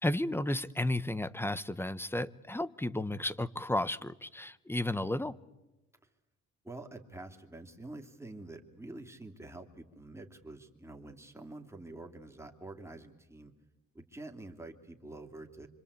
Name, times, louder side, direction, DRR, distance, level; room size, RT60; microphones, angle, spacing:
voice 1, 0.0-5.4, left 1 dB, 10° left, 17 dB, 1.1 m, -33 dB
voice 2, 6.6-13.5 13.9-15.7, right 2 dB, 10° right, 4 dB, 3.2 m, -47 dB
26.0 x 26.0 x 8.5 m, 1.0 s
cardioid pair, 90°, 30 cm